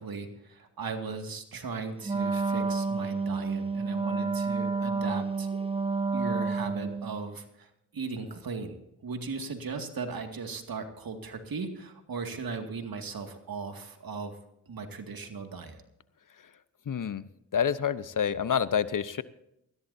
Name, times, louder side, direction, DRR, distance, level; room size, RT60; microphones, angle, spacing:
voice 1, 0.0-5.5 6.1-7.7 7.9-8.7 9.0-14.3 14.7-15.8, right 4 dB, 65° right, 6 dB, 2.2 m, -37 dB
Wind instrument woodwind instrument, 2.0-7.2, right 4 dB, 15° right, 1.0 m, -29 dB
voice 2, 16.9-17.2 17.5-19.2, left 8 dB, 55° left, 15 dB, 0.9 m, -28 dB
20.5 x 15.5 x 2.7 m, 0.81 s
supercardioid pair, 45°, 39 cm